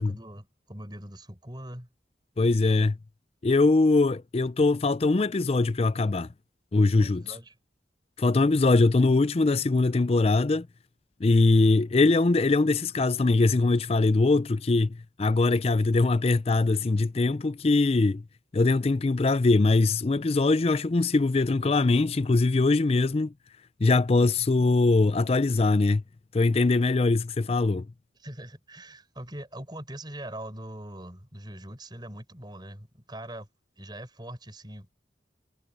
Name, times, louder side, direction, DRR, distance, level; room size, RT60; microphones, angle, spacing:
voice 1, 0.0-1.9 6.9-7.6 28.2-33.5 33.8-34.9, right 1 dB, 25° right, 6.1 m, -42 dB
voice 2, 2.4-3.0 3.4-6.3 6.7-7.2 8.2-10.7 11.2-18.2 18.5-23.3 23.8-26.0 26.3-27.9, left 3 dB, 35° left, 0.4 m, -22 dB
head